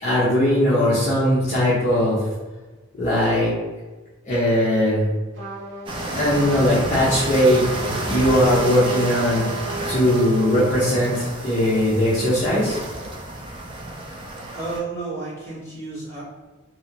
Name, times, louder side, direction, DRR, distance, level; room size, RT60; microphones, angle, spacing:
voice 1, 0.0-2.2 3.0-3.5 4.3-5.1 6.1-9.4 9.9-12.8, left 1 dB, 35° left, -9 dB, 0.8 m, -19 dB
Trumpet, 5.3-11.0, right 2 dB, 65° right, 0.9 m, -33 dB
sound 1, 5.9-14.8, right 1 dB, 25° right, 0.3 m, -31 dB
voice 2, 14.5-16.2, right 3 dB, 15° left, -8 dB, 1.2 m, -31 dB
3.1 x 2.7 x 2.9 m, 1.2 s
head